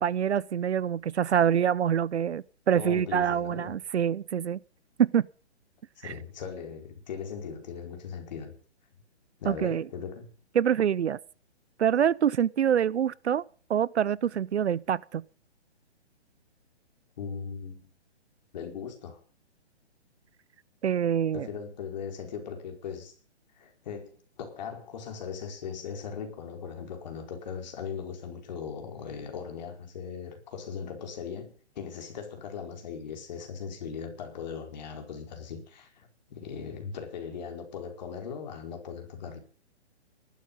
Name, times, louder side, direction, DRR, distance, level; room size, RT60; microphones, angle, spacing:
voice 1, 0.0-4.6 5.0-5.2 6.0-6.1 9.5-9.8 10.5-11.2 11.8-13.4 13.7-15.2 20.8-21.5, right 9 dB, 70° right, 0.8 m, -25 dB
voice 2, 2.7-3.7 6.0-8.5 9.4-10.3 17.2-17.9 18.5-19.2 21.3-23.2 23.6-39.4, left 6 dB, 40° left, 4.7 m, -39 dB
17.5 x 12.5 x 5.5 m
hypercardioid pair, 170°, 34 cm